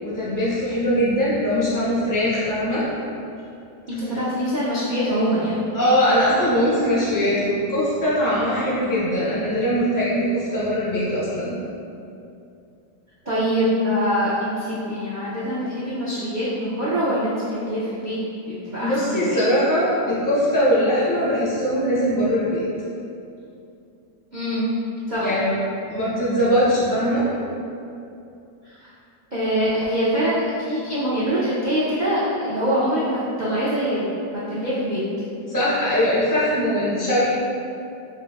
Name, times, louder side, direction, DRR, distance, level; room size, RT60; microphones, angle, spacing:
voice 1, 0.0-2.8 5.7-11.5 18.8-22.6 25.2-25.5 25.9-27.3 35.5-37.3, equal, 25° left, -8 dB, 0.4 m, -21 dB
voice 2, 3.9-5.6 13.3-18.2 18.5-19.4 24.3-24.7 25.1-25.3 28.6-28.9 29.3-35.0, equal, 70° right, -10 dB, 0.4 m, -24 dB
6.0 x 2.5 x 2.3 m, 2.6 s
omnidirectional pair, 1.8 m